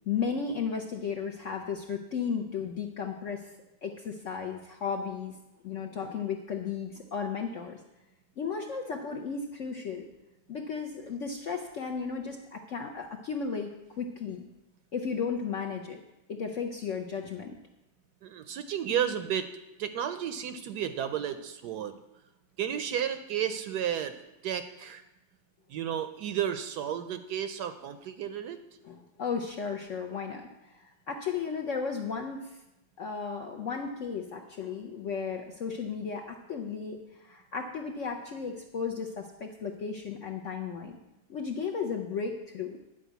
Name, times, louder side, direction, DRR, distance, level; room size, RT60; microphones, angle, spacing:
voice 1, 0.1-3.5 3.8-5.3 5.6-7.8 8.4-10.1 10.5-14.4 14.9-16.0 16.3-17.5 28.8-32.6 33.0-41.0 41.3-42.8, left 6 dB, 60° left, 3 dB, 0.8 m, -34 dB
voice 2, 18.2-19.5 19.8-21.9 22.6-25.0 25.7-28.6, right 9 dB, 70° right, 10 dB, 1.0 m, -32 dB
10.0 x 5.0 x 8.0 m, 0.96 s
omnidirectional pair, 2.0 m